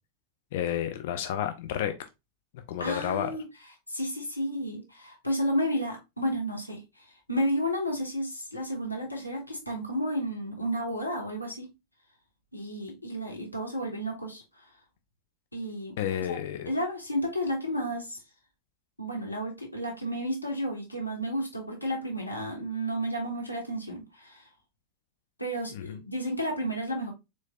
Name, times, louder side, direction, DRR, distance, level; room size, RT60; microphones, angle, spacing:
voice 1, 0.5-2.0 2.5-3.3 16.0-16.7 25.7-26.0, left 10 dB, 55° left, 0.4 m, -31 dB
voice 2, 2.8-3.4 3.9-11.7 12.5-14.7 15.5-15.9 16.3-16.4 16.7-18.2 19.0-24.5 25.4-27.1, equal, 85° left, 1.0 m, -32 dB
4.2 x 3.0 x 2.2 m
figure-of-eight pair, 90°, 0 cm